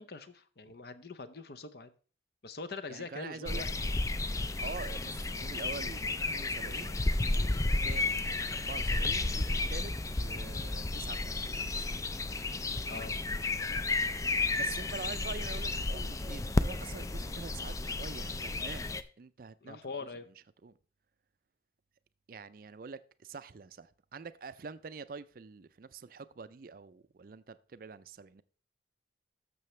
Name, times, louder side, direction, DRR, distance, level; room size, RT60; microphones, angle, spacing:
voice 1, 0.0-1.9 2.4-3.7 12.9-13.2 19.6-20.3, left 3 dB, 55° left, 0.7 m, -43 dB
voice 2, 2.9-3.8 4.6-6.0 6.3-7.5 7.8-12.0 14.5-20.1 20.6-20.7 22.3-28.4, right 4 dB, 50° right, 0.4 m, -46 dB
sound 1, 3.5-19.0, left 2 dB, 15° left, 0.4 m, -32 dB
12.0 x 6.8 x 3.2 m
head